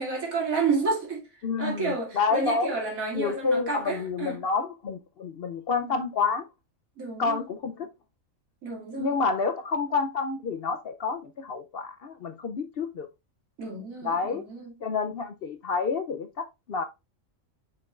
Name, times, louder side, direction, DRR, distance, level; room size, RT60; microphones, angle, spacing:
voice 1, 0.0-1.3 1.6-4.4 5.8-5.9 7.0-7.5 8.6-9.1 13.6-14.7, right 4 dB, 85° right, 2.8 m, -30 dB
voice 2, 1.4-2.7 3.1-6.5 7.2-7.9 9.0-13.1 14.0-14.4 14.8-16.8, left 4 dB, 55° left, 0.7 m, -29 dB
6.6 x 6.0 x 2.4 m
omnidirectional pair, 1.4 m